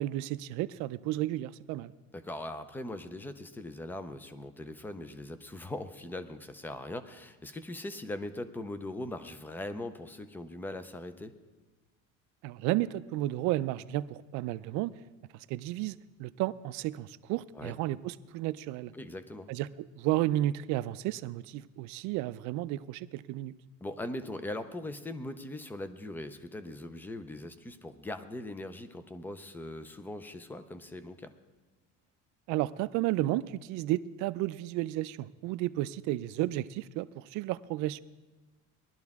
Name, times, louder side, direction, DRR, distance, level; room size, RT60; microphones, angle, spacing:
voice 1, 0.0-1.9 12.4-14.9 15.5-18.9 19.5-23.5 32.5-38.0, right 15 dB, 65° right, 15 dB, 0.5 m, -32 dB
voice 2, 2.1-11.3 17.6-17.8 18.9-19.5 23.8-31.3, left 1 dB, 5° left, 12 dB, 0.4 m, -40 dB
19.0 x 12.0 x 3.5 m, 1.3 s
cardioid pair, 165°, 32 cm